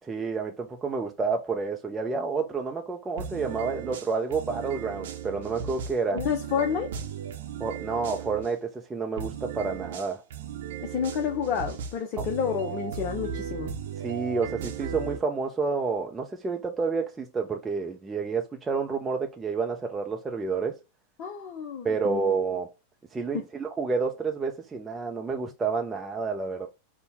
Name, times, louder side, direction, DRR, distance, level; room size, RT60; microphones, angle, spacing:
voice 1, 0.0-6.2 7.6-10.2 12.2-12.3 14.0-20.8 21.8-22.7 23.1-26.7, right 4 dB, 15° right, 0.6 m, -29 dB
sound 1, 3.2-8.5 9.2-15.2, right 7 dB, 60° right, 0.8 m, -36 dB
voice 2, 6.1-6.9 10.8-13.7 21.2-22.5, left 7 dB, 40° left, 0.7 m, -30 dB
5.3 x 2.2 x 4.0 m
figure-of-eight pair, 90°, 0 cm